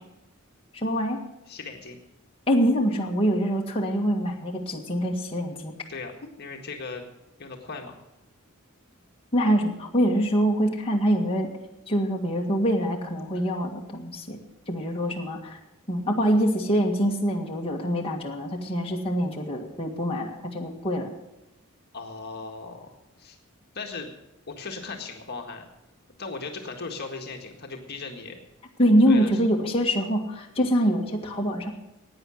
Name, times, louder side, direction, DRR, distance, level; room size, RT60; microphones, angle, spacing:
voice 1, 0.7-1.2 2.5-5.7 9.3-11.5 11.9-14.4 14.7-15.6 15.9-21.1 28.8-31.7, equal, 25° left, -1 dB, 1.8 m, -24 dB
voice 2, 1.5-2.0 5.9-6.1 6.4-7.1 7.4-8.0 21.9-23.4 23.7-24.1 24.5-25.7 26.2-28.4 29.0-29.4, left 4 dB, 50° left, 2 dB, 1.7 m, -37 dB
16.5 x 9.7 x 6.3 m, 0.97 s
head